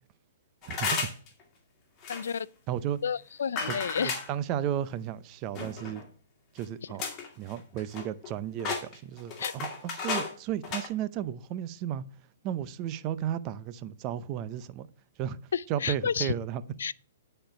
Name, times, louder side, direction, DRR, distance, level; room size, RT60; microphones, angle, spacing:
sound 1, 0.6-1.3 2.0-2.4 3.6-4.3 5.5-6.0 6.6-6.7 7.0-7.3 7.6-8.3 8.6-10.3 10.6-10.9, left 4 dB, 25° left, 2.2 m, -33 dB
voice 1, 0.6-1.1 2.7-3.0 3.7-6.0 6.5-7.0 7.4-12.0 12.4-14.9 15.2-15.4 15.7-16.6, right 10 dB, 30° right, 0.6 m, -34 dB
voice 2, 2.1-2.5 3.0-4.2 9.4-9.5 15.5-16.3 16.8-16.9, left 7 dB, 80° left, 0.3 m, -31 dB
10.0 x 4.4 x 5.0 m
hypercardioid pair, 145°, 0 cm